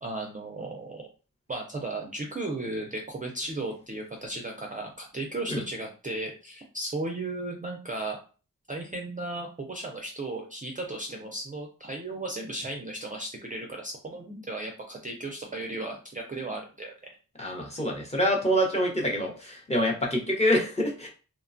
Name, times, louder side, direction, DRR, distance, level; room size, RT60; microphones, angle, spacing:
voice 1, 0.0-1.1 1.5-8.2 8.7-16.9, right 2 dB, 25° right, 1 dB, 0.4 m, -35 dB
voice 2, 17.4-21.1, equal, 20° left, -1 dB, 0.7 m, -26 dB
3.1 x 2.1 x 2.5 m, 0.36 s
wide cardioid pair, 145°, 34 cm